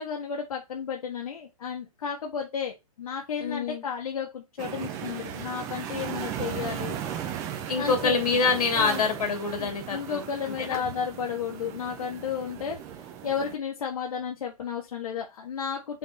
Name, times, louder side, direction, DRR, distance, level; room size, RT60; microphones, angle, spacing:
voice 1, 0.0-7.4 7.7-8.1 8.7-9.0 9.6-16.0, left 7 dB, 70° left, 0 dB, 1.6 m, -33 dB
voice 2, 3.4-3.8 7.7-10.2 10.6-10.8, left 4 dB, 85° left, 5 dB, 2.8 m, -26 dB
sound 1, 4.6-13.6, right 9 dB, 15° right, 0.7 m, -37 dB
5.7 x 4.4 x 4.2 m, 0.23 s
hypercardioid pair, 170°, 19 cm